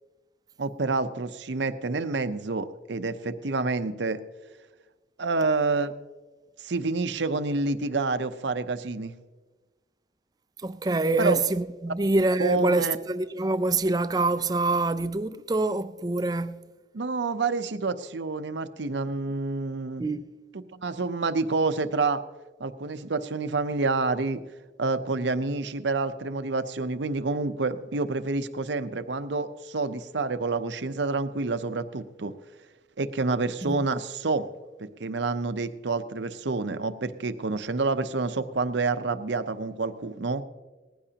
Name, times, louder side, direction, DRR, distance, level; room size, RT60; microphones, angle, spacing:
voice 1, 0.6-4.2 5.2-5.9 6.6-9.1 11.2-11.4 12.4-13.0 16.9-20.0 20.7-22.2 22.6-24.4 24.8-32.3 33.0-34.5 34.8-40.4, right 3 dB, 80° right, 0.7 m, -28 dB
voice 2, 10.6-16.6 20.0-20.2 33.6-33.8, right 2 dB, 20° right, 0.4 m, -25 dB
19.5 x 15.0 x 2.9 m
head